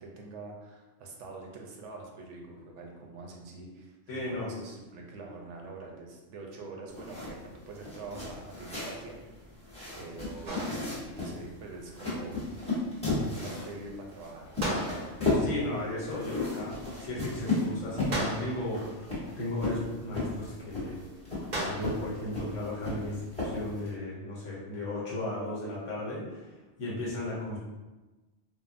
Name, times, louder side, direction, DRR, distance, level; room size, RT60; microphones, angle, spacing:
voice 1, 0.0-9.2 9.9-12.4 13.0-14.6 15.2-15.5, right 3 dB, 75° right, 0 dB, 0.9 m, -45 dB
voice 2, 4.1-4.5 15.4-21.0 21.6-27.6, left 1 dB, 80° left, -6 dB, 1.2 m, -35 dB
sound 1, 6.9-23.9, left 2 dB, 5° left, 0.9 m, -35 dB
sound 2, 10.5-11.3 14.6-15.4 18.1-18.9 21.5-22.2, right 1 dB, 45° right, 0.7 m, -35 dB
3.5 x 2.0 x 2.5 m, 1.1 s
omnidirectional pair, 1.3 m